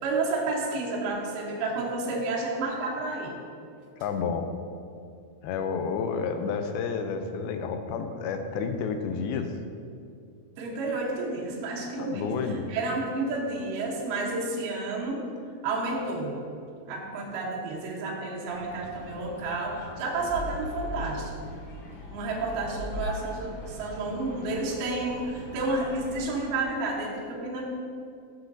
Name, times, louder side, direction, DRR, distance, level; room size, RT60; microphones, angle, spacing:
voice 1, 0.0-3.4 10.6-15.3 15.6-16.4 16.9-21.3 22.1-27.6, right 2 dB, 80° right, -2 dB, 2.9 m, -31 dB
voice 2, 4.0-4.5 5.4-9.5 11.8-12.6, left 5 dB, 85° left, 7 dB, 2.4 m, -30 dB
sound 1, 18.5-26.5, left 1 dB, 60° left, 2.4 m, -45 dB
sound 2, 20.2-23.7, left 1 dB, 40° right, 1.1 m, -38 dB
13.0 x 7.8 x 2.6 m, 2.4 s
omnidirectional pair, 4.5 m